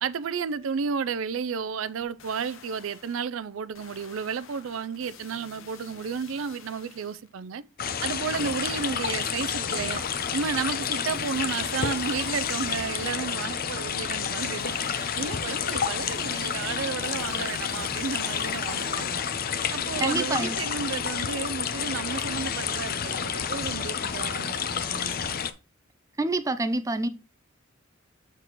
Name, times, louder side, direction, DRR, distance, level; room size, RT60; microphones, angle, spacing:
voice 1, 0.0-7.6 8.0-10.0 10.3-19.2 19.7-25.4, right 6 dB, 80° right, 0.4 m, -32 dB
sound 1, 2.0-3.3 3.7-7.3 8.3-13.3 14.6-19.5 20.0-20.1, left 6 dB, 80° left, 0.8 m, -50 dB
sound 2, 7.8-25.5, left 7 dB, 45° left, 0.6 m, -30 dB
voice 2, 20.0-20.6 26.2-27.1, right 2 dB, 15° right, 0.4 m, -27 dB
6.7 x 5.9 x 3.0 m
head